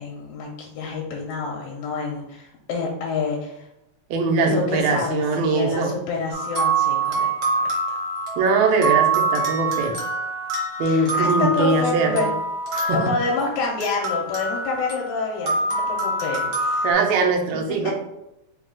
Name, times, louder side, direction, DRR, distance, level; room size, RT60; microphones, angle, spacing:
voice 1, 0.0-3.7 4.4-8.0 10.9-12.3 12.9-16.9 17.8-17.9, left 4 dB, 80° left, -1 dB, 1.8 m, -28 dB
voice 2, 4.1-5.9 8.4-10.0 10.8-12.2 12.7-13.1 16.8-17.9, right 3 dB, 75° right, 3 dB, 1.8 m, -21 dB
sound 1, 6.3-16.9, right 3 dB, 55° right, 1.0 m, -25 dB
4.5 x 2.3 x 3.7 m, 0.87 s
omnidirectional pair, 3.3 m